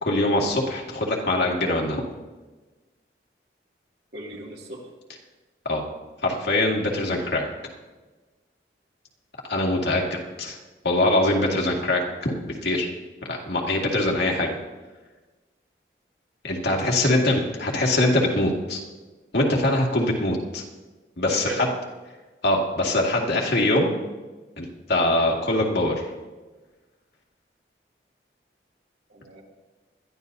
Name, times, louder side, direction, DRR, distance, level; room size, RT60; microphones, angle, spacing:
voice 1, 0.0-2.0 5.7-5.8 6.2-7.5 9.5-10.0 10.4-10.6 10.8-12.9 13.3-14.6 16.4-18.8 19.3-20.6 21.2-21.7 22.4-23.9 24.6-25.9, left 1 dB, 70° left, -1 dB, 2.1 m, -23 dB
voice 2, 4.1-4.9 9.9-10.1 16.7-17.2 21.3-21.7 29.1-29.4, right 2 dB, 70° right, -1 dB, 2.4 m, -37 dB
21.0 x 13.0 x 2.7 m, 1.2 s
head